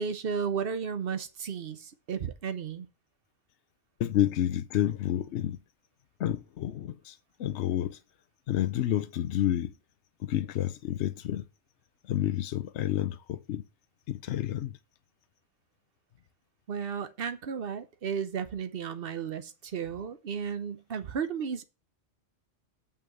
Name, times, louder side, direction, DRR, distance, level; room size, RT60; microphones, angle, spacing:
voice 1, 0.0-2.9 16.7-21.6, right 6 dB, 55° right, 1.0 m, -34 dB
voice 2, 4.0-5.6 6.2-8.0 8.5-9.7 10.2-11.4 12.0-13.6 14.1-14.7, left 12 dB, 70° left, 0.9 m, -29 dB
6.2 x 5.7 x 7.0 m
omnidirectional pair, 1.3 m